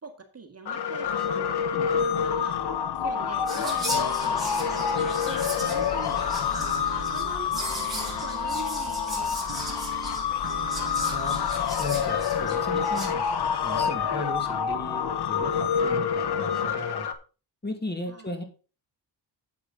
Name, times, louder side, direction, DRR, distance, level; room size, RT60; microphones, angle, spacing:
voice 1, 0.0-2.6 2.9-4.9 5.2-6.7 7.1-9.8 18.1-18.3, right 4 dB, 30° right, 6 dB, 1.6 m, -43 dB
sound 1, 0.6-17.1, left 7 dB, 55° left, 1.1 m, -27 dB
Whispering, 3.5-13.1, right 1 dB, ahead, 4.9 m, -38 dB
sound 2, 3.9-11.7, right 5 dB, 60° right, 2.1 m, -42 dB
voice 2, 11.1-11.4 11.8-13.3 13.6-17.1 17.6-18.4, left 2 dB, 20° left, 6 dB, 2.1 m, -36 dB
8.4 x 7.8 x 3.8 m, 0.34 s
cardioid pair, 80°, 48 cm